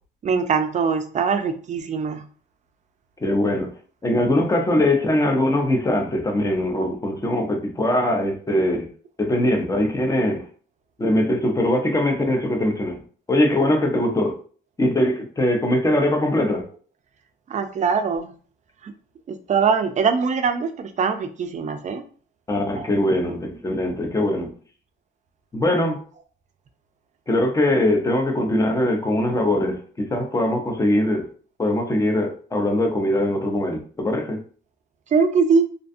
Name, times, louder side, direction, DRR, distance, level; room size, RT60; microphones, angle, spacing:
voice 1, 0.2-2.2 17.5-18.3 18.8-18.9 19.3-22.0 22.8-22.9 35.1-35.6, right 5 dB, 35° right, 0.4 m, -22 dB
voice 2, 3.2-3.7 4.0-8.9 9.2-10.4 11.0-13.0 13.3-14.3 14.8-16.7 22.5-24.5 25.5-26.0 27.3-31.3 31.6-34.4, left 1 dB, 15° left, 0.6 m, -21 dB
2.4 x 2.3 x 2.5 m
cardioid pair, 90°, 20 cm